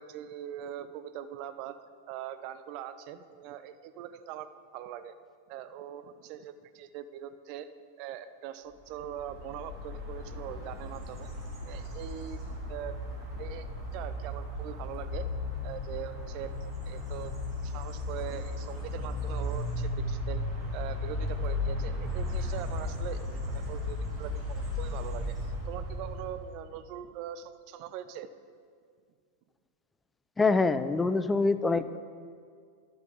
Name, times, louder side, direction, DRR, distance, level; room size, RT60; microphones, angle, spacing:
voice 1, 0.0-1.8 2.1-5.1 5.5-7.7 8.0-11.3 11.6-12.4 12.7-12.9 13.4-15.3 15.6-16.5 16.8-17.3 17.6-20.4 20.7-25.4 25.7-28.3, right 10 dB, 45° right, 12 dB, 0.5 m, -42 dB
sound 1, 8.9-26.5, left 2 dB, 20° right, 2.6 m, -35 dB
voice 2, 30.4-32.0, left 3 dB, 10° left, 13 dB, 0.4 m, -25 dB
12.5 x 7.1 x 3.9 m, 2.1 s
figure-of-eight pair, 90°, 0 cm